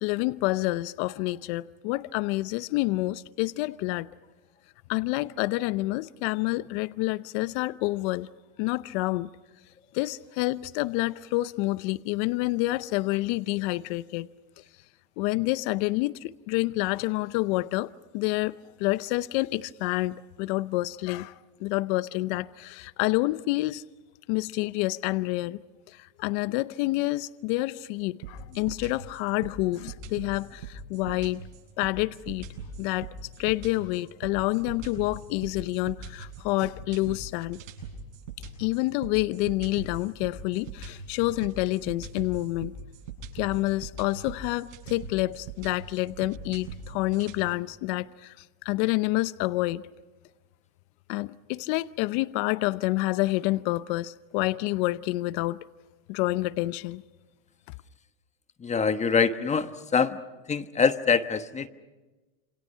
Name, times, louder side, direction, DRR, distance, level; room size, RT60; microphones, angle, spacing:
voice 1, 0.0-4.1 4.9-8.3 8.6-9.3 9.9-14.3 15.2-23.8 24.3-25.6 25.9-31.4 31.8-32.5 32.8-33.1 33.4-37.6 38.6-42.7 43.3-49.9 51.1-55.6 56.1-57.0, left 19 dB, 60° left, 16 dB, 0.8 m, -28 dB
sound 1, 28.2-47.4, right 4 dB, 85° right, 7.6 m, -41 dB
voice 2, 58.6-60.2 60.5-61.7, left 5 dB, 20° left, 10 dB, 1.2 m, -24 dB
28.0 x 27.5 x 5.7 m, 1.2 s
supercardioid pair, 135°, 38 cm